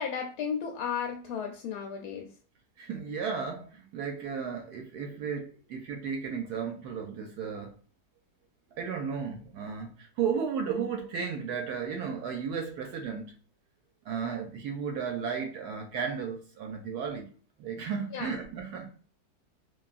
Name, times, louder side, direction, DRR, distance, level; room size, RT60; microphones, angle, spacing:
voice 1, 0.0-2.3 18.1-18.3, left 7 dB, 70° left, 1.0 m, -34 dB
voice 2, 2.8-7.7 8.8-13.4 14.1-17.3 17.6-18.9, right 6 dB, 70° right, 1.0 m, -34 dB
3.2 x 2.4 x 2.4 m
omnidirectional pair, 1.9 m